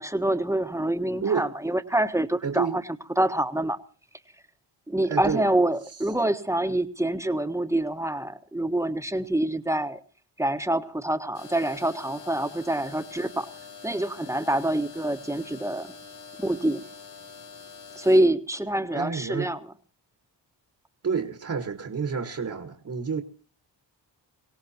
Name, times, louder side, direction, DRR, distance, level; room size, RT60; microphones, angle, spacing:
voice 1, 0.0-2.8 3.2-3.8 4.9-10.0 10.4-13.5 13.8-15.9 16.4-16.8 18.0-19.6, right 1 dB, 5° right, 1.4 m, -26 dB
voice 2, 2.4-2.8 5.1-5.5 18.9-19.5 21.0-23.2, right 6 dB, 40° right, 1.8 m, -29 dB
sound 1, 11.3-18.2, left 5 dB, 55° left, 3.9 m, -45 dB
24.0 x 17.5 x 3.0 m
cardioid pair, 65°, 44 cm